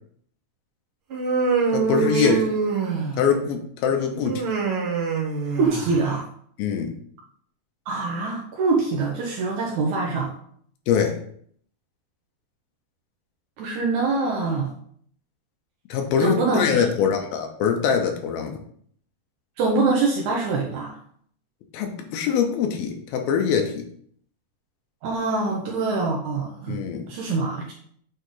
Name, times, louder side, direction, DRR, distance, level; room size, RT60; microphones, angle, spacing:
Human voice, 1.1-3.4 4.2-6.1, right 5 dB, 55° right, 1.5 m, -25 dB
voice 1, 1.7-2.4 3.2-4.4 6.6-6.9 10.9-11.2 15.9-18.6 21.7-23.9 26.7-27.1, left 7 dB, 80° left, 3 dB, 2.6 m, -23 dB
voice 2, 5.6-6.2 7.9-10.3 13.6-14.7 16.2-16.9 19.6-21.0 25.0-26.8 27.1-27.6, right 3 dB, 70° right, 0 dB, 1.9 m, -24 dB
8.3 x 3.7 x 3.8 m, 0.62 s
omnidirectional pair, 4.2 m